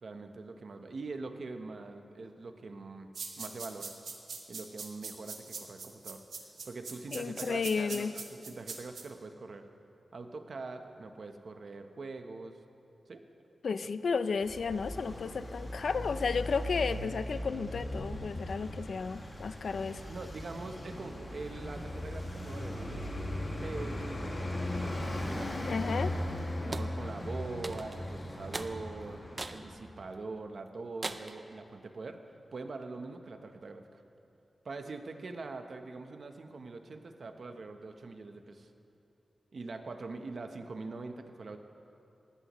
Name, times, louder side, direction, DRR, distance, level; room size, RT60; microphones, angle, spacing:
voice 1, 0.0-3.1 3.3-3.9 4.5-6.2 6.6-9.7 10.1-12.6 13.1-13.2 20.1-23.2 23.6-24.5 24.8-24.9 25.3-25.9 26.6-29.2 29.5-32.2 32.5-34.0 34.6-38.7 39.5-41.6, right 3 dB, 60° right, 6 dB, 0.9 m, -43 dB
sound 1, 3.1-9.0, right 4 dB, 90° right, 1.3 m, -41 dB
voice 2, 7.1-8.2 13.6-20.0 25.7-26.1, left 5 dB, 70° left, 12 dB, 0.4 m, -33 dB
Traffic noise roadway noise, 14.4-29.9, left 1 dB, 35° left, 2.0 m, -38 dB
sound 2, 26.7-26.9 27.6-28.0 28.5-28.7 29.4-29.6 30.1-30.2 31.0-31.4, right 3 dB, 35° right, 0.5 m, -39 dB
19.5 x 14.0 x 3.1 m, 2.7 s
wide cardioid pair, 115°, 0 cm